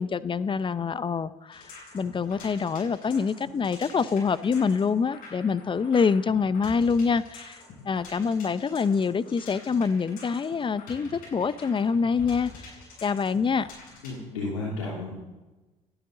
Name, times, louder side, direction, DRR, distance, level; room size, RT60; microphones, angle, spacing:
voice 1, 0.0-13.7, left 5 dB, 30° left, 16 dB, 0.8 m, -26 dB
sound 1, 1.5-14.2, left 3 dB, 65° left, 7.9 m, -47 dB
voice 2, 14.0-15.1, left 2 dB, 85° left, -5 dB, 3.2 m, -32 dB
29.5 x 12.5 x 4.0 m, 1.1 s
hypercardioid pair, 55°, 16 cm